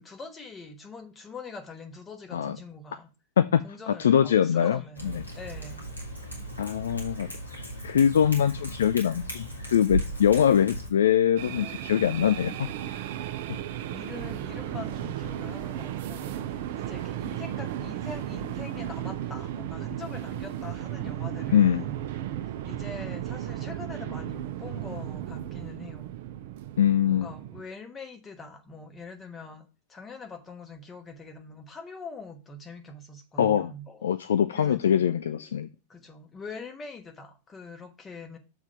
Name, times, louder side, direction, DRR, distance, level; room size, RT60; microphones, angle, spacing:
voice 1, 0.0-3.1 3.6-5.9 13.9-22.0 22.6-26.1 27.1-34.1 34.5-35.1 35.3-35.6 35.9-38.4, left 3 dB, 20° left, 1.3 m, -43 dB
voice 2, 3.4-5.2 6.6-7.3 7.5-9.4 9.7-13.0 21.5-21.8 26.8-27.3 33.4-33.7 34.0-35.7, left 9 dB, 65° left, 0.3 m, -23 dB
Cat, 4.9-10.9, right 1 dB, 80° left, 1.9 m, -36 dB
sound 1, 11.4-27.6, right 11 dB, 50° right, 0.6 m, -35 dB
7.0 x 3.7 x 5.7 m
figure-of-eight pair, 90°, 0 cm